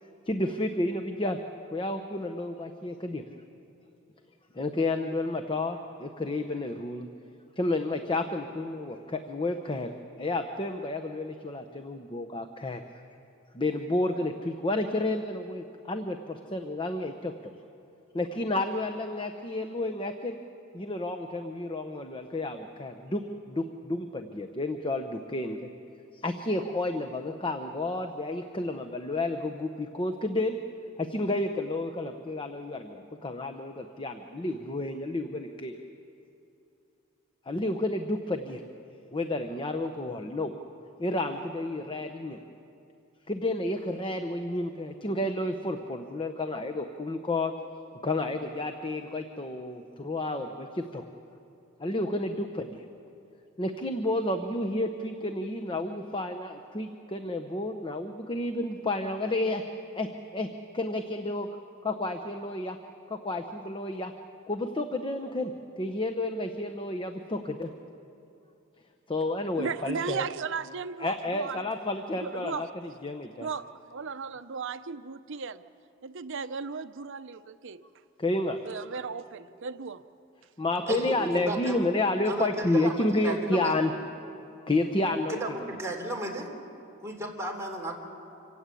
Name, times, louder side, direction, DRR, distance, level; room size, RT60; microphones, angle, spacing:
voice 1, 0.3-1.4 1.7-3.2 4.5-7.1 7.6-9.9 10.2-12.8 13.5-17.5 18.1-20.4 20.7-23.2 23.5-25.7 26.1-30.6 31.0-35.7 37.5-38.6 39.1-40.5 41.0-42.4 43.3-47.5 48.0-51.0 51.8-52.8 53.6-59.6 59.9-60.5 60.7-61.5 61.8-62.8 63.1-64.1 64.5-65.5 65.8-67.7 69.1-70.3 71.0-72.7 73.0-73.5 78.2-78.6 80.6-83.9 84.7-85.6, left 2 dB, 25° left, 6 dB, 0.9 m, -31 dB
voice 2, 69.6-71.7 72.2-72.7 73.4-75.6 76.0-77.8 78.6-80.0, right 5 dB, 65° right, 11 dB, 0.7 m, -36 dB
voice 3, 80.9-81.8 82.3-83.7 85.3-86.5 87.0-87.9, right 1 dB, 15° right, -1 dB, 3.3 m, -34 dB
26.5 x 17.0 x 8.4 m, 2.7 s
head